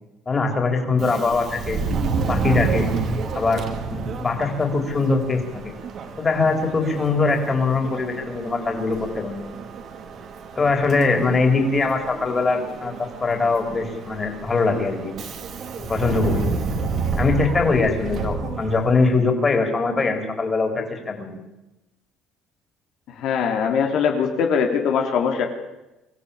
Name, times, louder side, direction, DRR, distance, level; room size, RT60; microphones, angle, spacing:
voice 1, 0.3-1.8 2.3-2.9 3.3-3.6 3.9-5.7 6.2-9.5 10.6-12.9 13.2-15.1 15.9-16.4 17.2-21.4, left 3 dB, 25° left, 4 dB, 4.2 m, -22 dB
Subway metro underground, 0.9-19.3, right 4 dB, 45° right, 2.7 m, -30 dB
voice 2, 23.2-25.4, left 6 dB, 65° left, 2 dB, 3.0 m, -21 dB
24.0 x 16.0 x 8.7 m, 0.98 s
cardioid pair, 135°, 0 cm